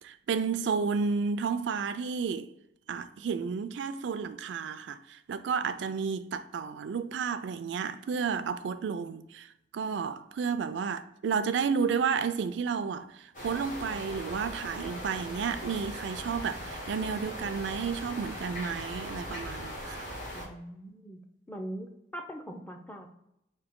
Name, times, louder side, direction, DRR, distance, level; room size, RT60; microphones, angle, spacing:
voice 1, 0.0-2.5 2.9-20.0, right 6 dB, 90° right, 0.3 m, -32 dB
sound 1, 13.3-20.5, equal, 45° left, 1.2 m, -39 dB
voice 2, 20.3-21.2 21.5-23.1, right 1 dB, 10° left, 0.5 m, -42 dB
4.8 x 2.7 x 3.6 m
head